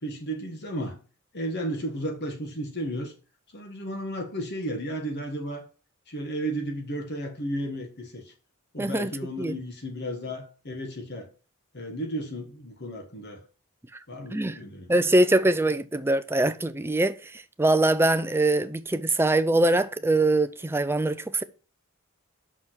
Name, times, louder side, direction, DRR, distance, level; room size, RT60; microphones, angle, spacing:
voice 1, 0.0-1.0 1.3-3.1 3.5-5.6 6.1-8.3 8.7-11.3 11.7-13.4 14.1-14.9, right 1 dB, 50° left, 1.5 m, -33 dB
voice 2, 8.8-9.1 9.4-9.5 14.3-14.6 14.9-21.4, right 2 dB, 10° right, 0.4 m, -23 dB
6.1 x 5.5 x 6.2 m
head